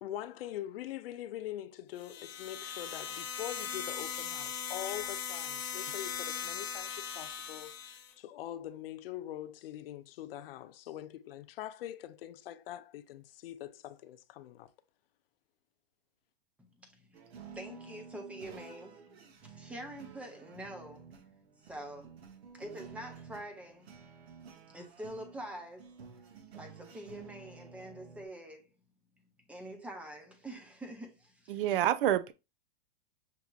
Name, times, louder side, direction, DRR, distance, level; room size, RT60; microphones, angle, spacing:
voice 1, 0.0-14.7, left 12 dB, 70° left, 0.5 m, -43 dB
sound 1, 2.0-8.1, left 7 dB, 85° left, 1.0 m, -39 dB
voice 2, 16.6-21.1 21.6-22.1 22.5-24.1 24.5-25.9 26.5-28.7 29.5-31.6, right 1 dB, 5° right, 0.5 m, -46 dB
sound 2, 17.1-28.3, right 6 dB, 85° right, 1.0 m, -52 dB
voice 3, 31.5-32.3, right 12 dB, 65° right, 0.5 m, -27 dB
6.0 x 2.8 x 2.3 m
supercardioid pair, 145°, 30 cm